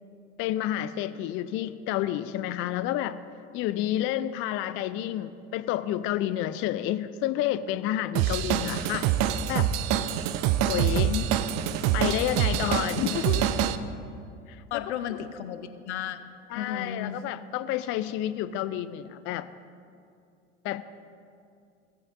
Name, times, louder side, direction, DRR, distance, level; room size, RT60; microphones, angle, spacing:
voice 1, 0.4-3.2 3.5-9.1 9.5-9.7 10.6-11.1 11.9-13.7 14.5-14.8 16.5-19.5 20.6-20.8, left 12 dB, 35° left, 13 dB, 0.4 m, -30 dB
Drum kit / Drum, 8.1-13.8, right 10 dB, 50° right, 0.6 m, -26 dB
voice 2, 10.8-11.2 14.7-16.2 16.5-17.2, left 9 dB, 70° left, 10 dB, 0.7 m, -34 dB
17.5 x 9.1 x 2.6 m, 2.4 s
figure-of-eight pair, 65°, 36 cm